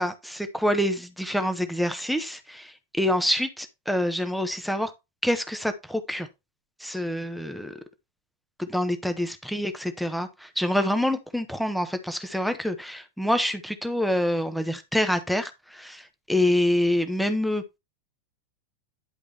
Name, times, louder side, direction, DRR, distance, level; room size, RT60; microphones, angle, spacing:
voice 1, 0.0-4.9 5.2-6.3 6.8-7.7 8.6-17.8, left 1 dB, ahead, 1.2 m, -26 dB
11.0 x 4.9 x 3.5 m
figure-of-eight pair, 90°, 0 cm